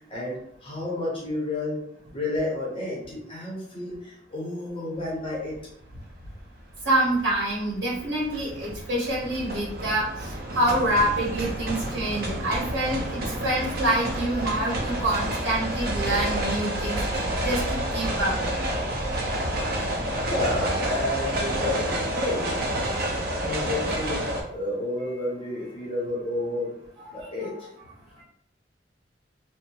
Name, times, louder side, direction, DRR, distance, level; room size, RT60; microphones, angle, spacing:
voice 1, 0.1-1.8 2.1-5.6 20.3-22.6 23.4-24.3 24.5-26.7 27.1-27.7, left 2 dB, 30° left, -5 dB, 0.7 m, -30 dB
sound 1, 5.4-5.6 6.0-24.4, right 1 dB, 55° right, 0.5 m, -29 dB
voice 2, 6.8-17.0 17.4-18.4 27.0-27.5, right 1 dB, 90° right, -4 dB, 0.8 m, -26 dB
2.7 x 2.0 x 2.8 m, 0.71 s
head